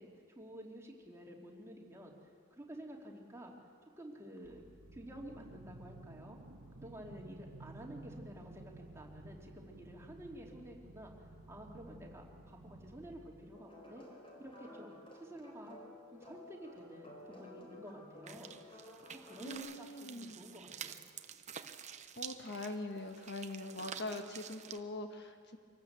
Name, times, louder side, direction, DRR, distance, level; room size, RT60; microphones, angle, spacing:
voice 1, 0.0-2.2 2.5-3.5 4.0-4.6 4.9-6.4 6.7-14.0 14.4-15.8 16.1-18.9 19.2-21.0, right 1 dB, 15° right, -1 dB, 2.7 m, -51 dB
sound 1, 4.4-13.5, right 2 dB, 80° right, 1.2 m, -54 dB
sound 2, 13.5-19.6, left 2 dB, 25° left, 4.3 m, -54 dB
sound 3, 18.3-24.8, right 7 dB, 35° right, 0.8 m, -49 dB
voice 2, 19.4-20.4 22.2-25.6, left 2 dB, 50° left, 5 dB, 1.5 m, -43 dB
24.5 x 18.5 x 8.1 m, 2.1 s
head